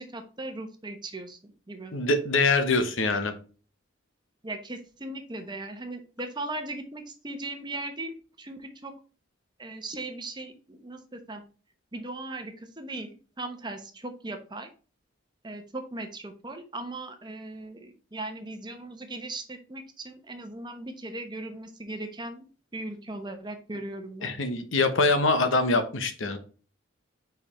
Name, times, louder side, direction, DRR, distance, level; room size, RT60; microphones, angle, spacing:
voice 1, 0.0-1.9 4.4-8.9 9.6-11.4 11.9-14.7 15.4-22.5 22.7-24.3, right 2 dB, 20° right, 6 dB, 1.0 m, -38 dB
voice 2, 1.9-3.3 24.2-26.4, left 3 dB, 70° left, 8 dB, 1.1 m, -24 dB
5.3 x 4.8 x 4.2 m, 0.37 s
head